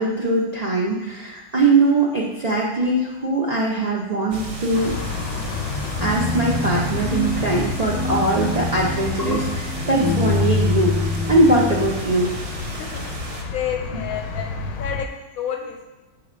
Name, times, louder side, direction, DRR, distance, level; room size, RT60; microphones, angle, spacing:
voice 1, 0.0-5.0 6.0-11.0 11.3-12.3, right 2 dB, 75° right, -4 dB, 0.3 m, -21 dB
sound 1, 4.3-13.4, right 2 dB, 45° right, 0.8 m, -33 dB
sound 2, 4.7-15.1, left 5 dB, 85° left, 1.2 m, -31 dB
sound 3, 6.0-11.9, left 3 dB, 20° right, 1.0 m, -25 dB
voice 2, 12.8-13.1 13.5-15.8, left 8 dB, 65° left, 4 dB, 1.0 m, -30 dB
5.8 x 3.9 x 4.9 m, 1.2 s
omnidirectional pair, 1.8 m